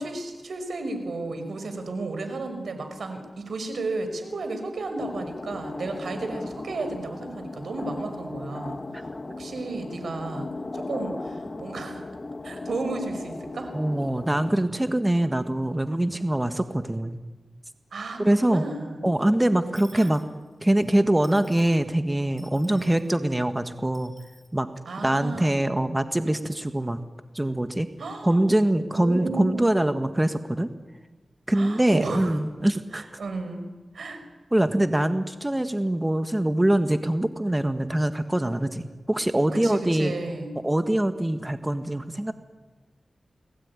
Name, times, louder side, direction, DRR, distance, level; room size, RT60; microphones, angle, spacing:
voice 1, 0.0-8.8 9.4-10.5 10.7-12.0 12.4-13.7 17.9-19.1 19.9-20.1 22.7-23.3 24.9-25.6 28.0-28.4 28.9-29.9 31.5-32.4 32.9-33.7 33.9-34.3 39.5-40.5, right 3 dB, 80° right, 7 dB, 5.2 m, -33 dB
sound 1, 5.0-14.5, left 2 dB, 40° left, 2.0 m, -37 dB
voice 2, 13.7-17.2 18.2-18.6 19.0-20.2 20.6-24.1 24.5-24.7 25.0-27.0 27.3-27.9 28.2-30.7 31.5-33.0 34.5-40.1 40.6-42.3, right 1 dB, 15° right, 9 dB, 1.5 m, -23 dB
Dishes pots and pans / Coin (dropping), 19.7-20.9 21.2-21.8 22.4-23.1 23.9-24.5, left 1 dB, 15° left, 6.6 m, -53 dB
29.5 x 20.0 x 9.8 m, 1.3 s
cardioid pair, 65°, 0 cm